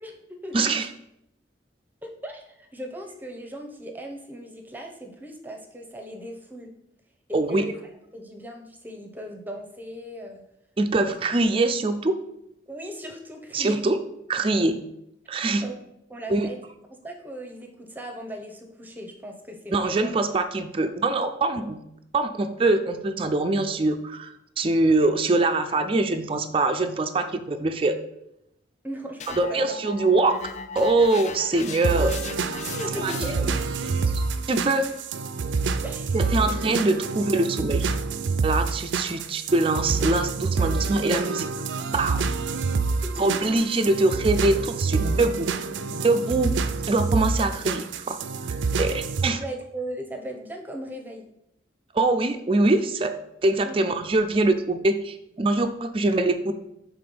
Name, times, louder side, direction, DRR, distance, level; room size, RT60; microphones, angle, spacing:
voice 1, 0.0-0.9 2.0-6.7 7.3-7.8 8.1-10.4 11.0-11.2 12.7-13.8 15.6-15.8 16.1-16.6 16.9-20.1 28.8-29.8 32.7-33.6 35.8-36.3 43.0-43.6 48.7-48.9 49.2-51.3 53.6-53.8, equal, 10° right, 2 dB, 0.8 m, -38 dB
voice 2, 0.5-0.9 7.3-7.7 10.8-12.2 13.5-14.0 14.3-14.8 15.3-15.7 16.3-16.5 19.7-21.8 22.1-27.9 29.4-30.4 30.7-32.1 33.0-33.1 34.1-34.9 36.1-37.9 38.4-41.5 41.9-42.3 43.2-45.5 45.9-46.5 46.9-48.2 48.8-49.4 51.9-53.2 53.4-56.6, right 2 dB, 30° right, 7 dB, 0.4 m, -23 dB
sound 1, 29.2-33.6, left 5 dB, 40° left, 0.4 m, -38 dB
sound 2, 31.8-49.3, right 4 dB, 90° right, 0.4 m, -27 dB
6.8 x 3.6 x 5.3 m, 0.81 s
head